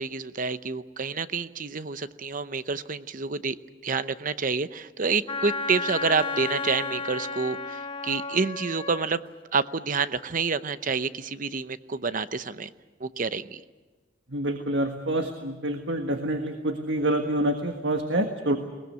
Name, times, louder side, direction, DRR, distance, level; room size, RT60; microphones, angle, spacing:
voice 1, 0.0-3.6 3.8-9.2 9.5-12.7 13.0-13.6, right 4 dB, 45° right, 13 dB, 0.8 m, -28 dB
Wind instrument woodwind instrument, 5.3-9.1, left 4 dB, 30° left, 1.2 m, -33 dB
voice 2, 14.3-18.6, right 1 dB, 70° right, 5 dB, 1.6 m, -27 dB
21.5 x 19.5 x 9.5 m, 1.3 s
head